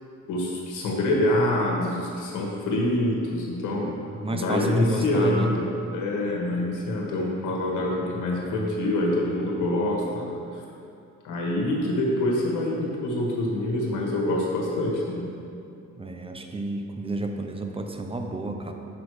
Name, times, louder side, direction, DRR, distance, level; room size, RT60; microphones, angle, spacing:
voice 1, 0.3-3.8 4.3-10.3 11.2-15.3, left 1 dB, 85° left, -2 dB, 1.5 m, -25 dB
voice 2, 3.8-5.5 16.0-18.7, right 2 dB, 20° right, 4 dB, 0.6 m, -31 dB
6.3 x 5.0 x 4.8 m, 2.6 s
cardioid pair, 90°, 30 cm